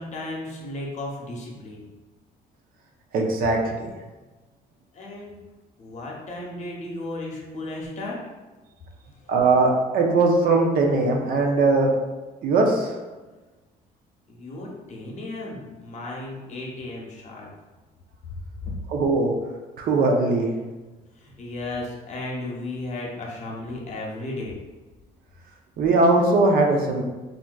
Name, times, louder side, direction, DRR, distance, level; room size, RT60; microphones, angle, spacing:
voice 1, 0.0-1.8 4.9-5.4 5.8-8.2 9.2-9.3 14.3-17.5 18.6-18.7 21.1-24.6, left 2 dB, 45° left, -2 dB, 0.8 m, -34 dB
voice 2, 3.1-3.9 9.3-11.9 12.4-12.9 18.9-19.3 19.8-20.5 25.8-27.0, right 3 dB, 60° right, 1 dB, 0.5 m, -20 dB
3.3 x 2.5 x 2.2 m, 1.2 s
cardioid pair, 110°, 17 cm